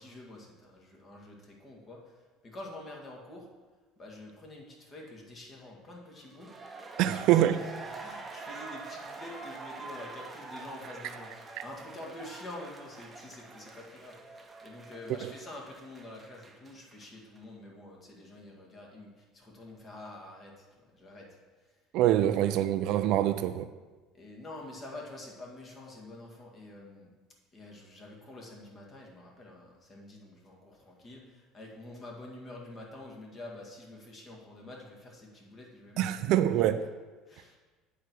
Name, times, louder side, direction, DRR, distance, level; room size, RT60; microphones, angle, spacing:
voice 1, 0.0-3.5 4.0-6.5 7.0-7.6 7.9-11.3 11.6-21.3 21.7-21.8 22.2-22.4 24.1-27.1 27.5-36.3 36.7-36.8 37.3-37.6, left 2 dB, 35° left, -1 dB, 2.1 m, -47 dB
sound 1, 6.2-17.1 17.4-17.5, right 3 dB, 20° right, 0.9 m, -45 dB
voice 2, 7.0-7.6 15.2-15.3 21.9-23.7 36.0-36.8, right 12 dB, 65° right, 11 dB, 0.4 m, -25 dB
8.4 x 4.6 x 6.2 m, 1.3 s
supercardioid pair, 115°, 0 cm